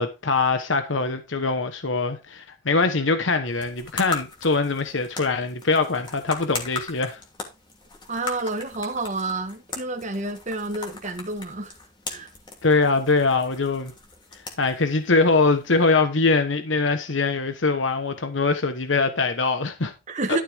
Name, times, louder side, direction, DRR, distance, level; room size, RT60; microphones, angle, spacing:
voice 1, 0.0-7.2 12.6-13.9 14.6-19.9, left 3 dB, 80° left, 1.1 m, -22 dB
sound 1, 3.5-15.9, left 3 dB, 25° left, 2.7 m, -39 dB
voice 2, 8.1-11.7 12.1-12.3 20.1-20.4, right 2 dB, 40° right, 1.5 m, -29 dB
12.5 x 6.8 x 3.5 m
head